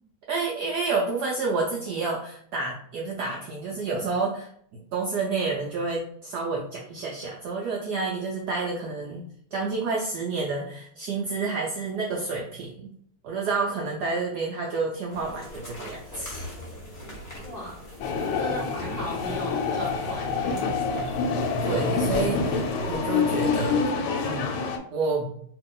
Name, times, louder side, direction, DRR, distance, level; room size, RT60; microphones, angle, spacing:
voice 1, 0.3-4.5 4.9-9.2 9.5-12.9 13.2-16.5 18.4-18.5 21.6-24.0 24.2-24.5 24.9-25.3, right 4 dB, 75° right, -1 dB, 0.9 m, -29 dB
sound 1, 15.1-23.0, equal, 30° left, 1.2 m, -40 dB
voice 2, 17.4-17.8 18.1-20.6, left 1 dB, 55° left, -7 dB, 0.6 m, -36 dB
sound 2, 18.0-24.8, left 4 dB, 85° left, 1.4 m, -27 dB
2.9 x 2.8 x 3.7 m, 0.65 s
omnidirectional pair, 2.3 m